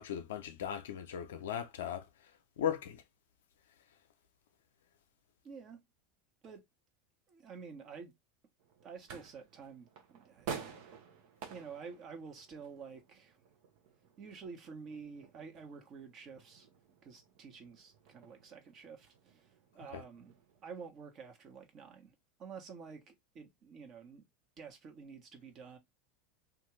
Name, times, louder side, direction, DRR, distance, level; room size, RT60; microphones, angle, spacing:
voice 1, 0.0-2.1 2.6-3.0 19.9-20.0, left 9 dB, 75° left, 0.5 m, -37 dB
voice 2, 5.4-5.8 6.4-6.6 7.3-8.1 8.8-10.6 11.5-13.4 14.2-16.7 17.0-20.3 20.6-24.2 24.6-25.8, right 5 dB, 45° right, 1.1 m, -50 dB
sound 1, 8.6-20.6, right 6 dB, 60° right, 0.7 m, -51 dB
2.5 x 2.5 x 3.1 m
hypercardioid pair, 85°, 0 cm